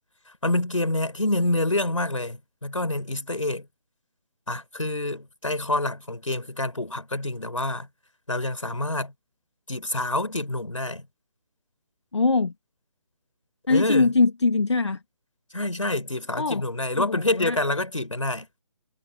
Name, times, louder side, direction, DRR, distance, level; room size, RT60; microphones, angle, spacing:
voice 1, 0.3-3.7 4.5-7.9 8.3-9.1 9.7-11.1 13.7-14.1 15.5-18.5, left 2 dB, 75° left, 4.6 m, -27 dB
voice 2, 12.1-12.5 13.7-15.0 16.4-16.6 17.0-17.6, left 3 dB, 60° left, 2.2 m, -22 dB
figure-of-eight pair, 145°, 17 cm